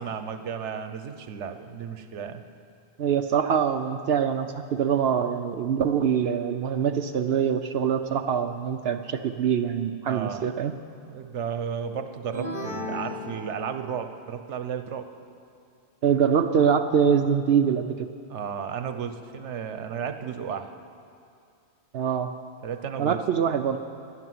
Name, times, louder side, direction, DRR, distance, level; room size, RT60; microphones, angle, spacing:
voice 1, 0.0-2.4 10.1-10.5 11.0-15.1 18.3-20.7 22.6-23.2, right 7 dB, 80° right, 8 dB, 1.2 m, -33 dB
voice 2, 3.0-10.7 16.0-18.1 21.9-22.3 23.0-23.8, right 7 dB, 65° right, 8 dB, 0.8 m, -24 dB
sound 1, 12.3-14.2, left 1 dB, 10° right, 2.0 m, -35 dB
12.0 x 11.5 x 9.4 m, 2.5 s
omnidirectional pair, 1.2 m